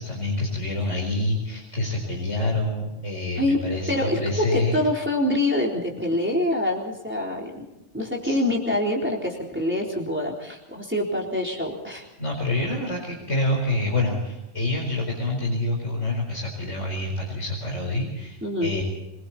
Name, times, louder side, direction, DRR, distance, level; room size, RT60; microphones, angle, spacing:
voice 1, 0.0-4.8 8.2-8.4 12.2-18.8, left 2 dB, 90° left, -2 dB, 5.3 m, -27 dB
voice 2, 3.9-7.6 7.9-12.1 18.4-18.7, left 1 dB, 10° right, -2 dB, 3.9 m, -25 dB
27.0 x 22.0 x 4.3 m, 0.97 s
omnidirectional pair, 1.2 m